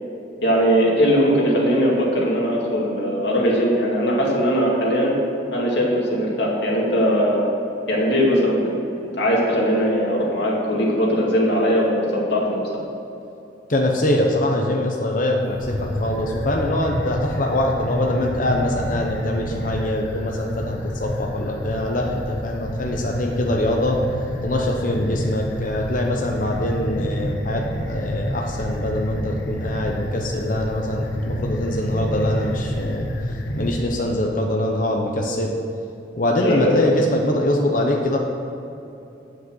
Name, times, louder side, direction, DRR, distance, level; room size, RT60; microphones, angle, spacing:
voice 1, 0.4-5.1 5.5-7.4 7.9-8.6 9.2-12.6 36.4-36.8, equal, 70° left, -3 dB, 2.3 m, -20 dB
voice 2, 13.7-24.0 24.4-33.1 33.6-35.5 36.1-38.2, left 1 dB, 45° left, 0 dB, 0.8 m, -23 dB
sound 1, 15.5-33.8, equal, 85° left, 1.3 m, -29 dB
8.4 x 7.7 x 6.3 m, 2.8 s
head